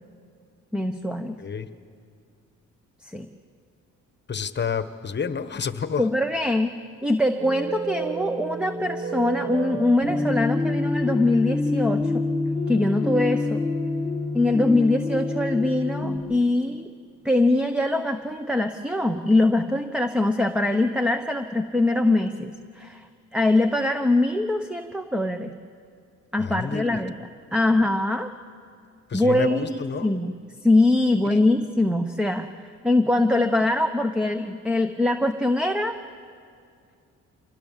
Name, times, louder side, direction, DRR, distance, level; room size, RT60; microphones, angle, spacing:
voice 1, 0.7-1.4 3.0-3.3 6.0-6.7 7.0-12.2 12.7-13.6 14.3-16.9 17.2-25.5 26.3-27.1 27.5-28.3 29.1-30.3 30.6-32.5 32.8-36.0, left 2 dB, 5° right, 7 dB, 1.0 m, -23 dB
voice 2, 4.3-6.0 26.4-27.0 29.1-30.1 31.3-31.4, left 6 dB, 35° left, 12 dB, 1.2 m, -29 dB
sound 1, 7.4-16.2, left 2 dB, 25° right, 4.5 m, -27 dB
26.0 x 19.0 x 7.5 m, 2.3 s
cardioid pair, 90°, 30 cm